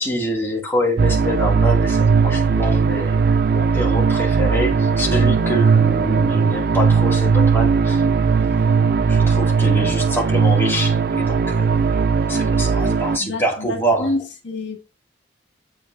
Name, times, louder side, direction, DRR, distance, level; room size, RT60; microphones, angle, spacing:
voice 1, 0.0-8.0 9.1-12.0 12.3-14.1, equal, 10° left, 2.3 m, -25 dB
sound 1, 1.0-13.2, right 5 dB, 50° right, 0.4 m, -18 dB
voice 2, 12.8-14.8, left 2 dB, 75° left, 2.0 m, -28 dB
8.6 x 8.1 x 2.6 m
head